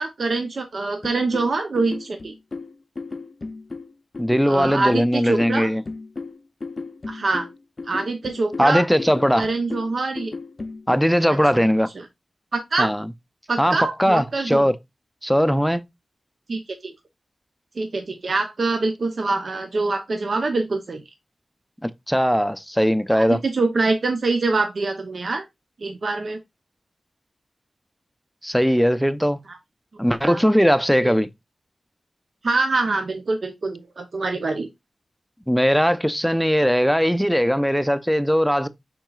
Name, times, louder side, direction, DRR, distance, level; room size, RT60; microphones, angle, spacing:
voice 1, 0.0-2.3 4.5-5.7 7.1-7.5 7.9-8.8 9.4-10.3 11.5-11.6 12.0-12.1 12.5-12.9 13.5-14.6 16.5-16.9 17.8-21.0 23.1-25.4 25.8-26.4 29.5-29.6 30.2-30.4 31.0-31.1 32.4-34.7, right 3 dB, 70° right, 0.7 m, -24 dB
sound 1, 1.0-11.0, left 3 dB, 50° left, 0.5 m, -35 dB
voice 2, 4.2-5.8 8.6-9.5 10.9-11.9 12.8-13.1 13.6-14.7 15.2-15.8 21.8-23.4 28.4-29.4 30.0-31.3 35.5-38.7, equal, ahead, 0.5 m, -19 dB
5.9 x 3.8 x 2.3 m
cardioid pair, 60°, 0 cm